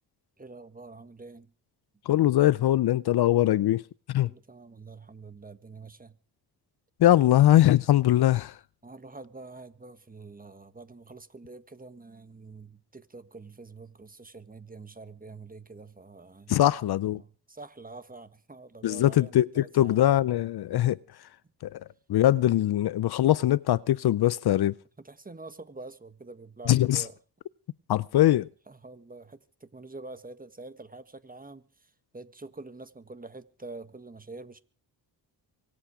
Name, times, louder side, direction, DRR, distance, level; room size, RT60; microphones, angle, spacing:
voice 1, 0.4-1.5 4.2-6.2 8.8-16.5 17.2-20.1 25.0-27.1 28.7-34.6, right 3 dB, 20° right, 1.5 m, -46 dB
voice 2, 2.1-3.8 4.1-4.3 7.0-8.6 16.5-17.2 18.8-21.0 21.6-21.8 22.1-24.7 26.7-27.0 27.9-28.5, left 13 dB, 65° left, 0.6 m, -22 dB
24.5 x 8.6 x 5.0 m
cardioid pair, 70°, 43 cm